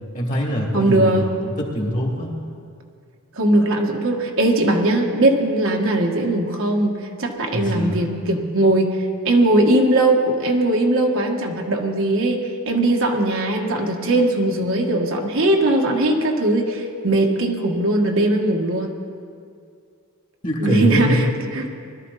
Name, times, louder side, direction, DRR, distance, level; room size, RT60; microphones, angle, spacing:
voice 1, 0.1-1.3 1.6-2.3 7.5-8.0 20.4-21.2, equal, 35° left, -1 dB, 2.4 m, -22 dB
voice 2, 0.7-1.3 3.3-9.0 9.2-18.9 20.6-21.8, right 1 dB, 60° right, 1 dB, 1.6 m, -19 dB
21.0 x 13.0 x 4.1 m, 2.3 s
head